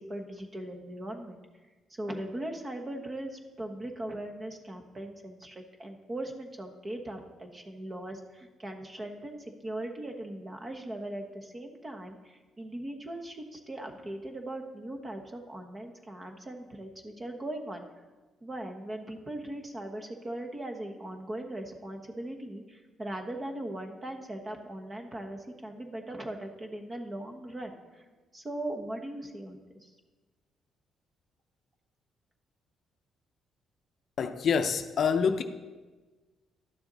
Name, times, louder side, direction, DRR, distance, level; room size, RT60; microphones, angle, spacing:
voice 1, 0.0-1.4 2.0-17.8 18.4-28.0 28.3-29.9, right 1 dB, 30° right, 4 dB, 1.2 m, -39 dB
voice 2, 34.2-35.4, left 6 dB, 60° left, 9 dB, 0.5 m, -26 dB
11.5 x 6.9 x 4.0 m, 1.3 s
cardioid pair, 90°, 0 cm